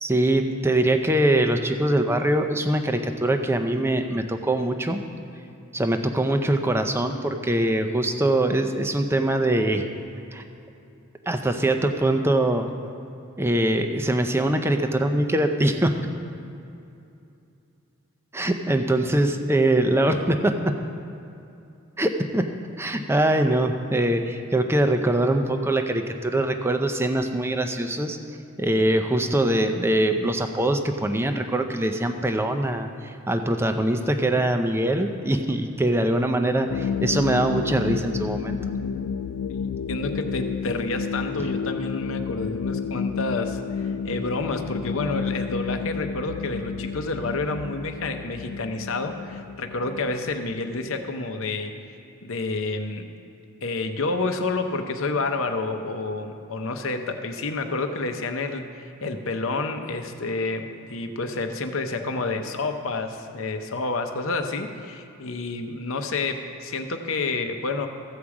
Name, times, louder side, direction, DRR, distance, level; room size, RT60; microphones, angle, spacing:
voice 1, 0.0-5.0 5.7-9.9 10.3-10.4 11.3-12.7 13.4-16.0 18.3-20.7 22.0-22.5 22.8-38.6 41.4-41.5, right 1 dB, 10° right, 6 dB, 0.5 m, -23 dB
sound 1, 36.7-51.1, left 6 dB, 85° left, 0.3 m, -31 dB
voice 2, 39.9-51.7 52.2-53.1 53.6-67.9, left 3 dB, 65° left, 6 dB, 0.8 m, -29 dB
15.0 x 4.9 x 7.2 m, 2.6 s
head